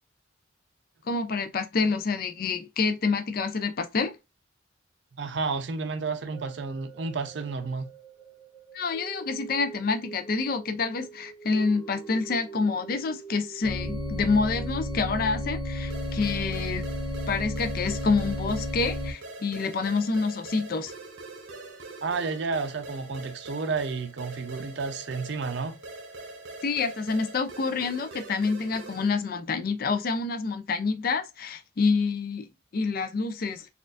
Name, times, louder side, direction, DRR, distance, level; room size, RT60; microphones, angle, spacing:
voice 1, 1.1-4.2 8.7-16.8 17.3-20.9 26.6-32.5 32.7-33.7, left 4 dB, 45° left, 0.4 m, -27 dB
voice 2, 5.1-7.9 22.0-25.7, right 4 dB, 60° right, 0.5 m, -31 dB
sound 1, 6.3-16.7 17.1-17.2, right 5 dB, 5° left, 0.7 m, -46 dB
sound 2, 13.6-19.1, equal, 90° left, 1.1 m, -32 dB
sound 3, 15.9-29.2, right 2 dB, 80° right, 0.9 m, -43 dB
4.2 x 2.5 x 2.4 m
head